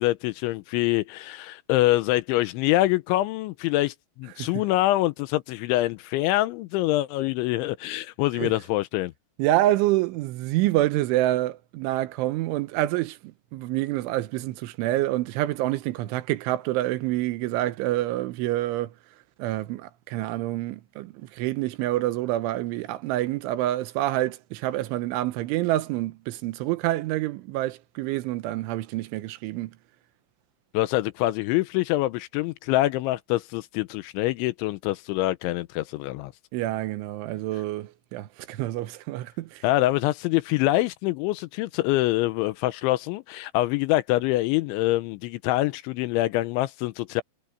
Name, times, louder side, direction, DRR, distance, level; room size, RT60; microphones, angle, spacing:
voice 1, 0.0-9.1 30.7-36.3 39.6-47.2, left 17 dB, 85° left, 3.1 m, -25 dB
voice 2, 9.4-18.9 19.4-29.8 36.5-39.6, right 15 dB, 90° right, 3.4 m, -27 dB
omnidirectional pair, 5.4 m